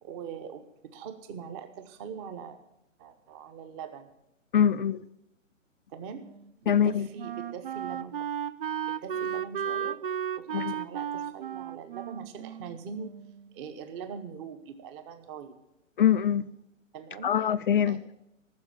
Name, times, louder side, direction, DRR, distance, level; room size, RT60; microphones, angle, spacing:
voice 1, 0.0-2.6 3.0-4.1 5.9-6.2 6.6-8.1 8.9-10.0 10.4-13.1 13.5-15.5 16.9-17.3 17.8-18.0, right 6 dB, 20° right, 10 dB, 0.9 m, -42 dB
voice 2, 4.5-5.0 6.7-7.1 10.5-10.7 16.0-16.5 17.2-18.3, left 9 dB, 45° left, 15 dB, 0.4 m, -24 dB
Wind instrument woodwind instrument, 6.2-13.5, right 9 dB, 45° right, 0.5 m, -35 dB
14.0 x 6.8 x 8.8 m, 0.84 s
hypercardioid pair, 140°, 39 cm